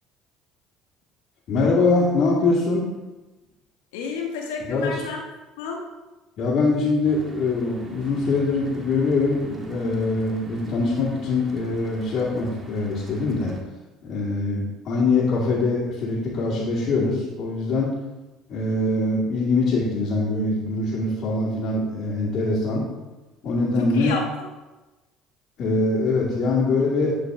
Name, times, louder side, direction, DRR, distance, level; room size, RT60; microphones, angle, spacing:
voice 1, 1.5-2.9 4.6-5.0 6.4-13.5 14.0-18.0 18.5-22.8 23.4-24.2 25.6-27.2, left 3 dB, 60° left, -7 dB, 2.4 m, -23 dB
voice 2, 3.9-5.2 5.6-5.8 23.8-24.5, left 4 dB, 85° left, 2 dB, 1.4 m, -31 dB
Mechanical fan, 7.0-13.6, equal, 30° right, 1.5 m, -44 dB
11.0 x 4.5 x 3.8 m, 1.1 s
hypercardioid pair, 75°, 0 cm